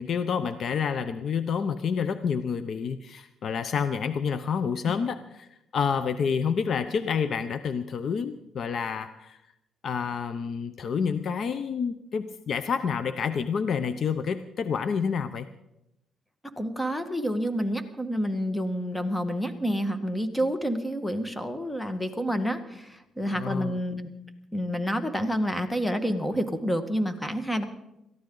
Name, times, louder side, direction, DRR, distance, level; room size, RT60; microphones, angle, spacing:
voice 1, 0.0-5.5 5.7-9.4 9.8-15.4 23.3-23.8, left 6 dB, 60° left, 12 dB, 0.7 m, -28 dB
voice 2, 16.6-24.1 24.5-27.6, equal, 10° left, 9 dB, 1.6 m, -29 dB
22.5 x 14.5 x 3.9 m, 0.85 s
cardioid pair, 90°, 0 cm